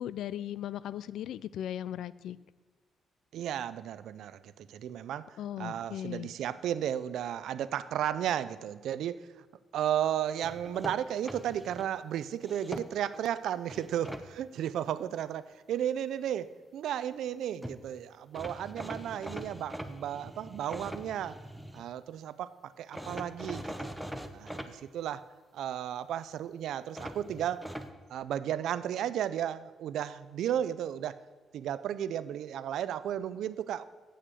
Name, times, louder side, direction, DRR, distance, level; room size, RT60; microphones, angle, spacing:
voice 1, 0.0-2.4 5.4-6.3, left 11 dB, 80° left, 18 dB, 0.3 m, -37 dB
voice 2, 3.3-9.3 9.7-21.4 21.7-23.9 24.3-25.2 25.5-27.6 28.1-31.2 31.5-33.8, right 10 dB, 75° right, 15 dB, 0.4 m, -34 dB
sound 1, 10.4-11.9 12.4-13.2 13.7-14.2 17.3-17.4 17.6-17.8 18.3-21.8 22.9-24.7 26.9-27.9, equal, ahead, 0.6 m, -42 dB
7.9 x 6.4 x 7.6 m, 1.4 s
cardioid pair, 145°, 0 cm